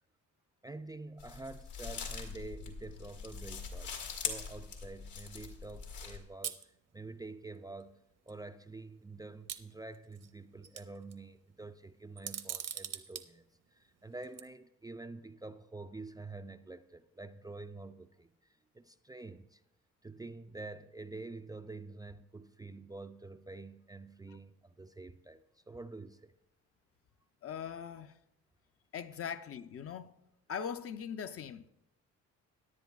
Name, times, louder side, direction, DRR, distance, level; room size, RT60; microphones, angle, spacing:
voice 1, 0.6-6.6 6.9-8.0 8.3-13.4 13.7-18.3 18.7-19.6 20.0-26.3, right 3 dB, 15° right, 0.4 m, -47 dB
sound 1, 1.2-6.2, left 5 dB, 80° left, 2.1 m, -42 dB
sound 2, 6.4-6.6 7.8-7.9 8.3-8.4 9.5-10.3 10.6-11.1 12.2-13.2 14.2-14.4, right 9 dB, 55° right, 0.8 m, -41 dB
voice 2, 27.4-28.1 28.9-30.1 30.5-31.7, left 7 dB, 50° left, 0.6 m, -40 dB
17.5 x 10.0 x 2.4 m
cardioid pair, 90°, 30 cm